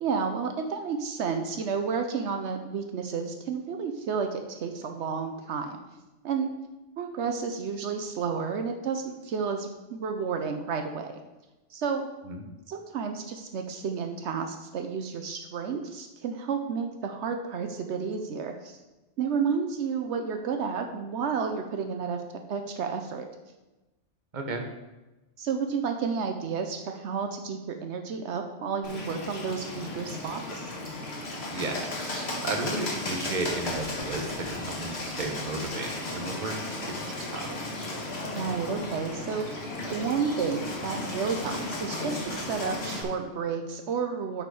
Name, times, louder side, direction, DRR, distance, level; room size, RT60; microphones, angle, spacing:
voice 1, 0.0-5.8 6.2-6.5 7.0-11.2 11.7-12.1 12.7-18.8 19.2-22.2 22.5-23.2 25.4-30.7 38.2-44.4, right 6 dB, 75° right, 5 dB, 1.0 m, -31 dB
voice 2, 24.3-24.6 31.5-36.6 36.9-37.5, right 2 dB, 45° right, 3 dB, 1.1 m, -34 dB
Bird, 28.8-43.0, left 2 dB, 65° left, 1.8 m, -35 dB
10.5 x 4.4 x 4.8 m, 1.1 s
omnidirectional pair, 1.2 m